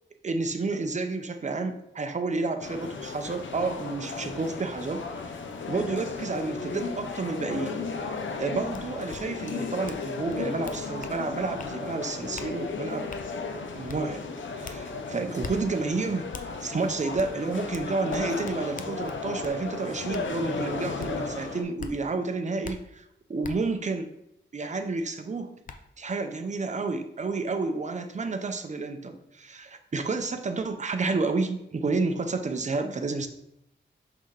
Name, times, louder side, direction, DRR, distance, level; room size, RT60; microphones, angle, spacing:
voice 1, 0.2-5.0 5.7-13.1 13.7-14.2 14.6-16.3 16.6-23.0 23.3-24.1 24.5-25.5 26.0-33.3, right 3 dB, 40° right, 7 dB, 0.6 m, -30 dB
sound 1, 2.6-21.6, left 4 dB, 75° left, 0.8 m, -35 dB
sound 2, 8.7-8.8 9.1-9.2 9.8-10.0 10.3-11.2 11.6-11.7 12.3-12.5 13.1-13.2 13.9-14.0 14.6-14.8 15.4-15.5 16.3-16.5 17.2-17.3 17.7-19.6 20.1-20.2 21.0-21.1 21.8-21.9 22.6-22.7 23.4-23.5 25.0-25.1 25.6-25.8, left 5 dB, 45° left, 0.5 m, -41 dB
6.0 x 5.7 x 3.3 m, 0.82 s
wide cardioid pair, 125°, 20 cm